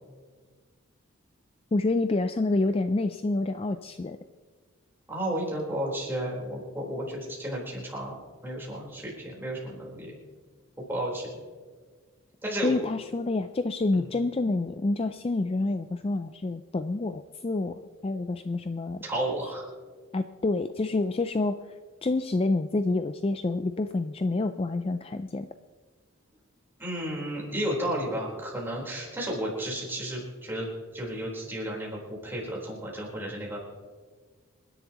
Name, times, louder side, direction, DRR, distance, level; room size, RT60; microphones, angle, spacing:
voice 1, 1.7-4.2 12.6-19.0 20.1-21.7 22.0-25.5, left 2 dB, 25° left, 9 dB, 0.3 m, -28 dB
voice 2, 5.1-8.2 8.4-10.2 10.9-11.3 12.4-12.8 13.9-14.1 19.0-19.7 26.8-30.7 30.9-33.6, right 1 dB, 10° right, -4 dB, 4.1 m, -32 dB
27.5 x 11.0 x 3.0 m, 1.5 s
head